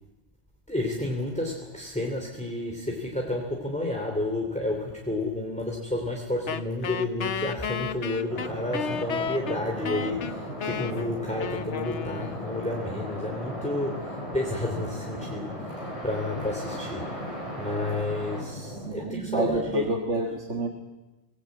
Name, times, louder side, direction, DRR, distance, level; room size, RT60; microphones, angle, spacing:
voice 1, 0.7-17.3 17.6-19.9, left 1 dB, 5° left, 0 dB, 2.9 m, -31 dB
Wind instrument woodwind instrument, 6.5-12.8, left 7 dB, 65° left, 1.3 m, -33 dB
sound 1, 8.3-18.9, equal, 25° left, 5.4 m, -36 dB
voice 2, 18.8-20.7, right 2 dB, 65° right, 3 dB, 2.3 m, -28 dB
25.5 x 19.0 x 8.5 m, 1.1 s
omnidirectional pair, 1.3 m